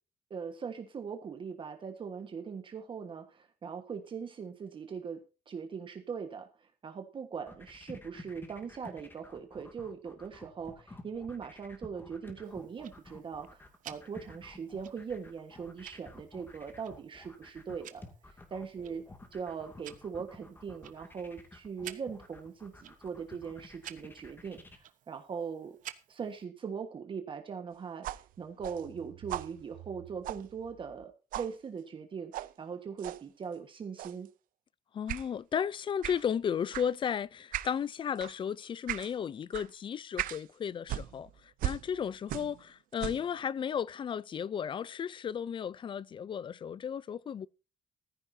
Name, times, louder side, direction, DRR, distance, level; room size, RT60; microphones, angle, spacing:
voice 1, 0.3-5.2 5.5-18.0 18.5-19.0 19.3-25.8 26.1-34.3, right 6 dB, 35° right, 1.5 m, -41 dB
sound 1, 7.3-24.8, left 2 dB, 15° left, 2.4 m, -51 dB
Tick-tock, 12.4-26.4, right 11 dB, 70° right, 1.1 m, -53 dB
sound 2, 28.0-31.0 31.3-31.5 32.3-32.5 33.0-33.2 34.0-34.3 35.1-35.3 36.0-36.2 36.7-36.9 37.5-37.8 38.2-38.4 38.9-39.1 39.5-39.7 40.2-40.4 40.9-42.6 42.9-43.3, right 13 dB, 85° right, 0.7 m, -39 dB
voice 2, 34.9-41.3 41.6-47.5, left 8 dB, 35° left, 0.5 m, -34 dB
14.5 x 14.5 x 2.8 m
cardioid pair, 150°, 14 cm